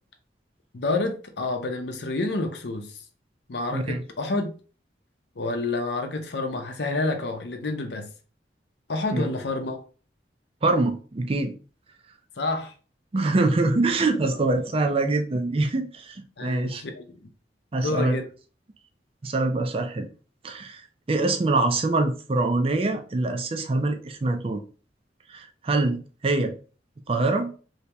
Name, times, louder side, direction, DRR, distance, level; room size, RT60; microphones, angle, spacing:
voice 1, 0.7-3.0 3.5-4.5 5.4-8.1 8.9-9.8 12.4-12.7 16.4-17.3 17.8-18.2, left 2 dB, 70° left, 0.7 m, -29 dB
voice 2, 3.7-4.0 9.1-9.3 10.6-11.5 13.1-16.8 17.7-18.2 19.2-20.1 20.4-24.6 25.3-26.6 27.1-27.5, right 2 dB, 35° right, 0.4 m, -24 dB
2.9 x 2.8 x 3.3 m
head